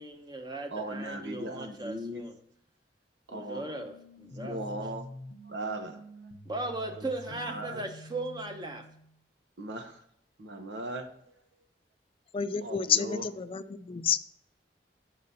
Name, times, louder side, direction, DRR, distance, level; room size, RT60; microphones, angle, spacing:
voice 1, 0.0-2.3 3.3-4.6 6.4-8.9, right 2 dB, 25° right, 5 dB, 0.9 m, -38 dB
voice 2, 0.7-2.3 3.3-3.6 4.3-5.1 5.5-6.0 6.9-7.1 7.5-7.8 9.6-10.0 10.4-11.4 12.6-13.2, right 1 dB, 90° right, 7 dB, 0.9 m, -38 dB
sound 1, 3.3-9.3, equal, 75° left, 0.7 m, -48 dB
voice 3, 12.3-14.2, left 7 dB, 30° left, 12 dB, 0.3 m, -29 dB
6.4 x 3.9 x 5.4 m, 0.71 s
head